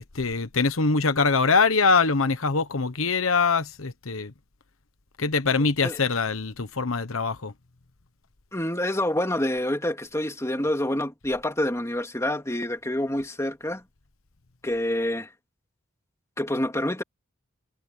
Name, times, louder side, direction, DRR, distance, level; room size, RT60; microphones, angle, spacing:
voice 1, 0.0-4.3 5.2-7.5, left 4 dB, 85° left, 1.2 m, -23 dB
voice 2, 8.5-13.8 14.6-15.3 16.4-17.0, left 1 dB, 15° left, 3.0 m, -27 dB
head